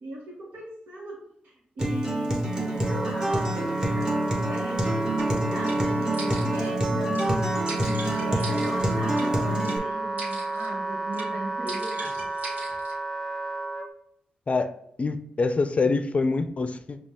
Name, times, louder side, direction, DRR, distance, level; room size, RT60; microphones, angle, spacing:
voice 1, 0.0-1.2 1.4-5.1 5.5-12.3, right 1 dB, 75° right, -7 dB, 1.2 m, -37 dB
Acoustic guitar, 1.8-9.8, right 1 dB, 20° right, 1.3 m, -27 dB
Wind instrument woodwind instrument, 2.3-13.9, right 2 dB, 5° right, 1.0 m, -32 dB
sound 1, 5.2-5.3 5.7-5.8 6.1-6.7 7.1-7.3 7.7-9.3 9.6-9.8 10.2-10.7 11.1-11.3 11.7-12.9, right 3 dB, 50° right, 1.5 m, -39 dB
voice 2, 15.0-17.0, left 3 dB, 40° left, 9 dB, 0.4 m, -25 dB
5.2 x 2.3 x 3.5 m, 0.70 s
supercardioid pair, 50°, 3 cm